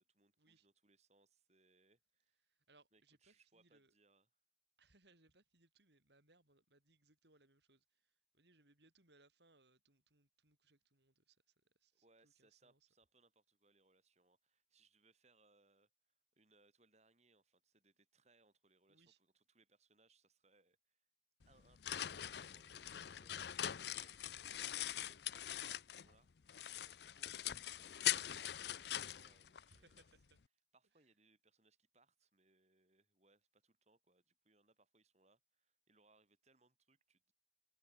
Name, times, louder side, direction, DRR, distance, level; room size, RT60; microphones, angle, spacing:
voice 1, 0.0-2.4 2.9-4.3 11.9-21.1 21.5-30.0 30.7-37.3, right 3 dB, 35° right, 5.5 m, -74 dB
voice 2, 2.4-3.9 4.8-12.9 18.9-19.2 29.7-30.4 30.9-31.1, right 2 dB, 65° right, 5.1 m, -72 dB
sound 1, 21.4-26.1 26.5-30.0, left 11 dB, 60° left, 0.6 m, -42 dB
open air
head